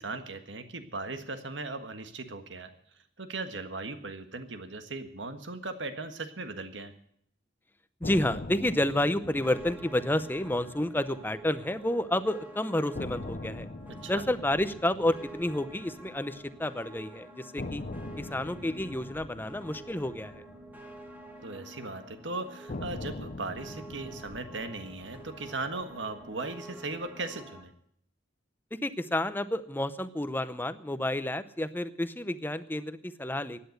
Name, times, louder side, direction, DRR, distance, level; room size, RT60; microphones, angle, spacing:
voice 1, 0.0-2.7 3.2-6.9 14.0-14.2 21.4-27.7, right 3 dB, 75° right, 8 dB, 1.6 m, -38 dB
sound 1, 8.0-12.1 12.4-12.5 12.9-17.0 17.6-21.9 22.7-27.0, left 2 dB, 45° left, 0.6 m, -43 dB
voice 2, 8.0-13.7 14.1-17.8 18.2-20.4 28.8-33.6, left 1 dB, 10° left, 13 dB, 0.7 m, -30 dB
sound 2, 9.2-27.6, right 1 dB, 10° right, 2.0 m, -49 dB
16.0 x 10.0 x 6.6 m, 0.66 s
head